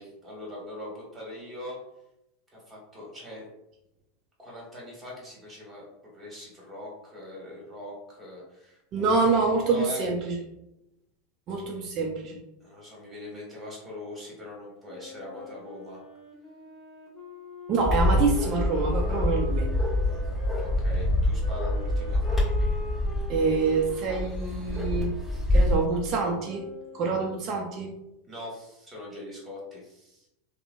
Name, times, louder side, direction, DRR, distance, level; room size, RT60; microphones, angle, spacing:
voice 1, 0.0-1.8 2.5-3.4 4.4-5.9 6.1-9.1 9.6-10.1 12.6-16.0 20.0-20.3 20.6-22.2 28.2-30.3, left 1 dB, 20° right, -4 dB, 1.3 m, -41 dB
voice 2, 8.9-10.4 11.5-12.4 17.7-19.7 23.3-25.2 25.5-26.7 26.9-27.9, right 4 dB, 45° right, 0 dB, 0.4 m, -26 dB
Wind instrument woodwind instrument, 14.8-20.7 21.4-27.2, left 1 dB, 35° left, 1.0 m, -43 dB
Bark, 17.9-25.8, left 1 dB, 10° left, 1.3 m, -26 dB
2.8 x 2.0 x 2.6 m, 0.88 s
hypercardioid pair, 90°, 0 cm